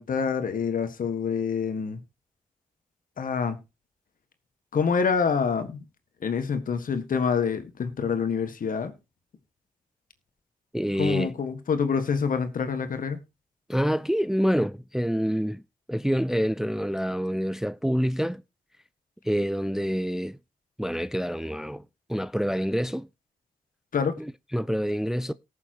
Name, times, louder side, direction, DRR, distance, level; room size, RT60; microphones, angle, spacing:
voice 1, 0.0-2.0 3.2-3.6 4.7-5.8 6.2-8.9 11.0-13.2 23.9-24.2, left 6 dB, 60° left, 1.7 m, -26 dB
voice 2, 10.7-11.3 13.7-15.6 15.9-18.4 19.2-20.4 20.8-21.8 22.1-23.1 24.2-25.3, equal, 5° right, 0.5 m, -27 dB
18.5 x 7.1 x 3.0 m
supercardioid pair, 40°, 16 cm